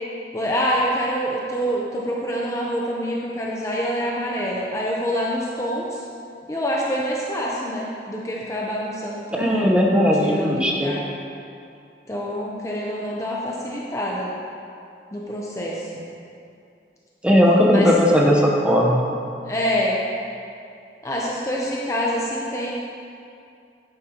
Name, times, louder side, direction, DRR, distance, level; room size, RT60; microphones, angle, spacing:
voice 1, 0.3-6.0 6.5-9.7 10.2-11.0 12.1-14.3 15.1-15.9 17.7-17.9 19.4-20.0 21.0-22.7, equal, 15° left, -4 dB, 0.7 m, -26 dB
voice 2, 9.3-10.9 17.2-19.1, equal, 5° right, -2 dB, 0.9 m, -17 dB
11.0 x 8.9 x 2.9 m, 2.5 s
head